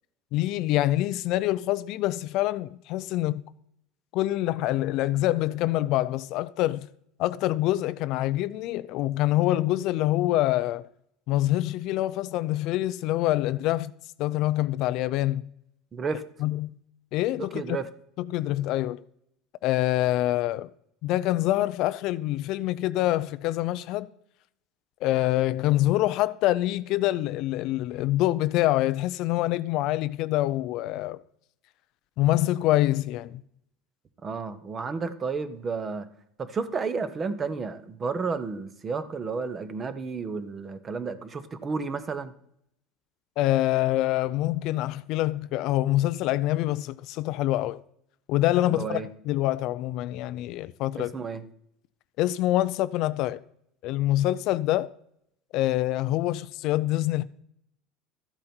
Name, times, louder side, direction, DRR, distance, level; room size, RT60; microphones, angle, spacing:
voice 1, 0.3-3.4 4.1-6.9 7.2-10.9 11.3-13.9 14.2-15.4 16.4-16.7 17.1-17.8 18.2-19.0 19.6-20.7 21.0-24.1 25.0-31.2 32.2-33.4 43.4-47.8 48.3-51.1 52.2-53.4 53.8-54.9 55.5-57.2, left 15 dB, 55° left, 0.5 m, -25 dB
voice 2, 15.9-16.2 17.5-17.9 34.2-36.1 36.4-42.3 48.7-49.1 51.0-51.4, right 4 dB, 25° right, 0.9 m, -32 dB
13.5 x 8.7 x 4.5 m
supercardioid pair, 145°, 0 cm